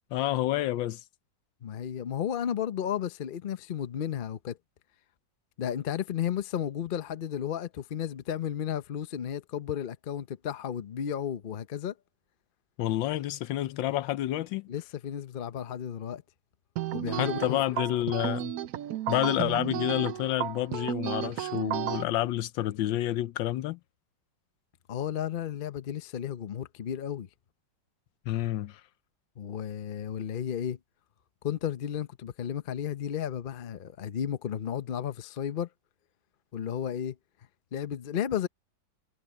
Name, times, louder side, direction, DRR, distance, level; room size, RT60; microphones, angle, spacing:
voice 1, 0.1-1.0 12.8-14.7 17.1-18.5 19.1-23.8 28.3-28.8, left 14 dB, 80° left, 1.4 m, -29 dB
voice 2, 1.6-4.6 5.6-11.9 14.7-16.2 16.9-17.6 24.9-27.3 29.4-30.8 31.4-35.7 36.5-37.2 37.7-38.5, left 9 dB, 65° left, 0.5 m, -33 dB
sound 1, 16.8-22.0, right 12 dB, 65° right, 1.0 m, -33 dB
omnidirectional pair, 2.0 m